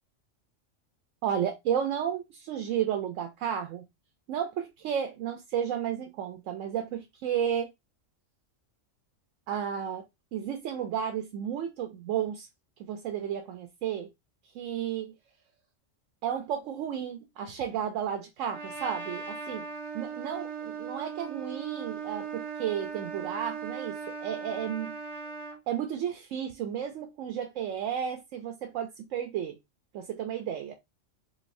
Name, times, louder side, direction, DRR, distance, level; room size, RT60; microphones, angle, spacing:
voice 1, 1.2-3.9 4.3-7.7 9.5-10.0 10.3-12.5 12.8-14.1 14.5-15.1 16.2-19.7 19.9-25.0 25.7-29.6 29.9-30.7, right 9 dB, 85° right, 0.9 m, -32 dB
Trumpet, 18.5-25.6, right 6 dB, 30° right, 0.8 m, -38 dB
3.9 x 2.6 x 2.5 m
omnidirectional pair, 1.3 m